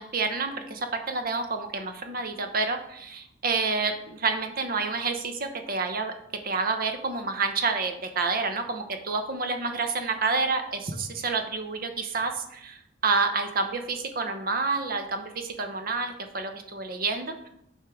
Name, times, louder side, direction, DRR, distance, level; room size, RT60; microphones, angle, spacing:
voice 1, 0.0-6.1 6.4-17.5, right 4 dB, 50° right, 6 dB, 0.8 m, -29 dB
9.0 x 4.5 x 3.6 m, 0.78 s
head